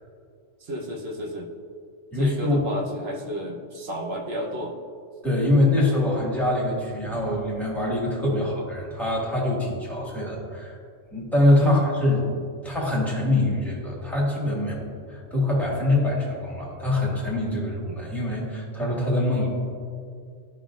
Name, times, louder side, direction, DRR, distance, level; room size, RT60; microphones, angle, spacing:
voice 1, 0.6-1.5 2.1-4.8 11.6-11.8, equal, 55° right, 0 dB, 1.1 m, -31 dB
voice 2, 2.1-2.6 5.2-10.8 11.1-12.2 12.6-14.8 15.1-19.5, left 1 dB, ahead, -6 dB, 1.8 m, -24 dB
13.0 x 5.4 x 2.5 m, 2.2 s
omnidirectional pair, 1.4 m